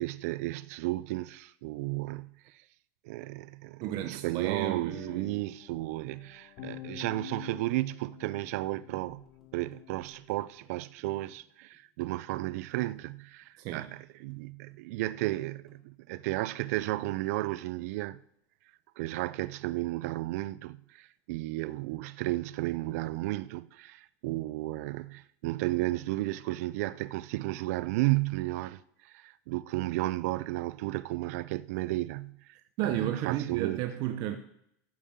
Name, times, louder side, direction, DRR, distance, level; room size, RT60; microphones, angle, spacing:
voice 1, 0.0-2.3 3.0-9.2 9.5-18.2 19.0-33.8, right 18 dB, 80° right, 0.5 m, -33 dB
voice 2, 3.8-5.4 13.6-13.9 32.8-34.4, right 12 dB, 55° right, 0.8 m, -33 dB
sound 1, 4.8-10.7, left 19 dB, 55° left, 0.5 m, -49 dB
sound 2, 7.7-11.4 11.7-12.4 12.7-13.8 14.0-14.4 14.7-15.4 15.7-15.8, right 2 dB, ahead, 3.4 m, -64 dB
13.5 x 5.5 x 7.2 m
cardioid pair, 155°, 8 cm